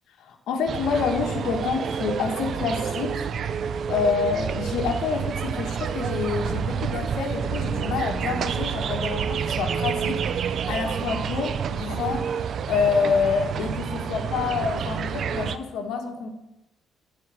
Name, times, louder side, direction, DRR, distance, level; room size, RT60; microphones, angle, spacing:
voice 1, 0.2-3.2 3.9-16.3, left 5 dB, 80° left, 3 dB, 2.0 m, -27 dB
sound 1, 0.7-15.6, right 7 dB, 60° right, 0.7 m, -29 dB
14.5 x 4.8 x 9.2 m, 0.96 s
cardioid pair, 90°, 0 cm